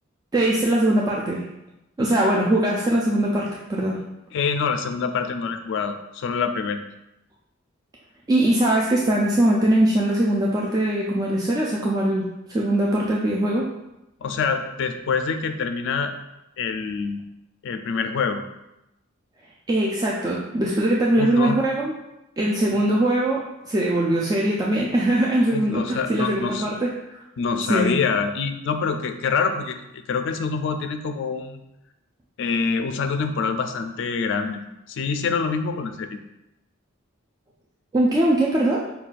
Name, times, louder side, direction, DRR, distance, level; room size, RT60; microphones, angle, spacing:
voice 1, 0.3-1.4 2.0-4.0 8.3-13.7 19.7-21.9 22.4-27.2 27.6-28.0 37.9-38.9, right 1 dB, 20° right, -4 dB, 0.3 m, -21 dB
voice 2, 4.3-6.8 14.2-16.1 16.6-17.2 17.6-18.4 21.2-21.6 25.5-26.7 27.4-31.6 32.4-34.6 34.9-36.1, left 5 dB, 60° left, 7 dB, 0.3 m, -25 dB
5.5 x 2.3 x 2.4 m, 0.91 s
head